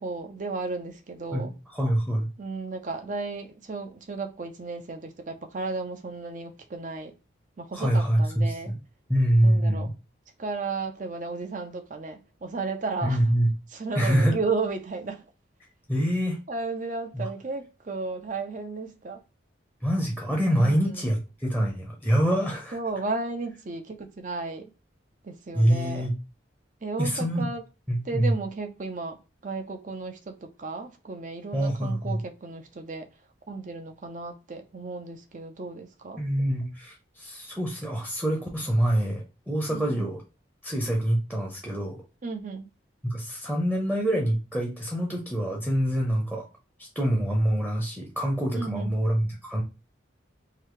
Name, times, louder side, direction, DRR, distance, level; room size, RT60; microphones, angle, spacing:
voice 1, 0.0-1.5 2.4-7.1 7.6-8.8 9.4-9.9 10.4-13.2 13.7-15.2 16.5-19.2 20.5-21.1 22.7-24.7 25.2-26.1 26.8-27.6 28.0-33.1 33.5-36.2 39.7-40.1 42.2-42.7 48.5-49.0, right 3 dB, 40° right, 0.6 m, -34 dB
voice 2, 1.3-2.3 7.7-8.8 9.1-9.9 13.0-13.5 13.9-14.3 15.9-16.4 17.1-17.3 19.8-22.8 25.5-26.1 27.0-27.5 27.9-28.3 31.5-32.2 36.2-40.2 40.6-42.0 43.0-46.4 46.8-49.6, equal, 5° right, 0.7 m, -25 dB
3.9 x 2.7 x 3.1 m
head